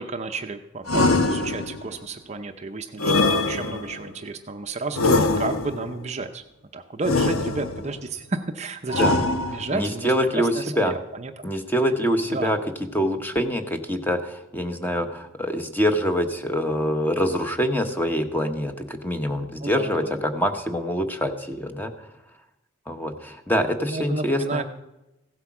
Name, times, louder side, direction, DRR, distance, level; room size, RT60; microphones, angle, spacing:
voice 1, 0.0-6.4 6.7-11.4 12.3-12.5 19.6-20.2 23.8-24.6, right 3 dB, 30° right, 7 dB, 0.6 m, -32 dB
sound 1, 0.9-1.9 3.0-4.1 4.9-5.9 7.0-7.9 8.9-9.9, left 3 dB, 90° left, 1.0 m, -23 dB
voice 2, 9.7-10.9 11.4-12.6 12.9-21.9 22.9-24.6, equal, 10° left, 7 dB, 1.0 m, -25 dB
15.5 x 8.0 x 6.0 m, 0.93 s
head